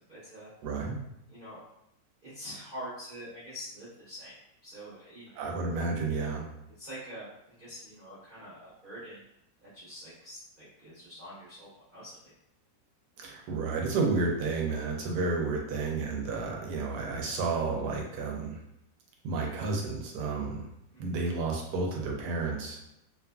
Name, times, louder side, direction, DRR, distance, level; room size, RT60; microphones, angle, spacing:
voice 1, 0.1-0.5 1.3-1.6 2.2-4.3 4.6-5.4 6.8-9.2 9.6-12.3 20.9-21.2, equal, 40° right, -11 dB, 0.8 m, -45 dB
voice 2, 0.6-1.0 5.4-6.5 13.2-18.6 19.2-20.7 21.0-22.8, right 3 dB, 75° right, 0 dB, 1.1 m, -31 dB
2.8 x 2.4 x 2.2 m, 0.82 s
omnidirectional pair, 1.9 m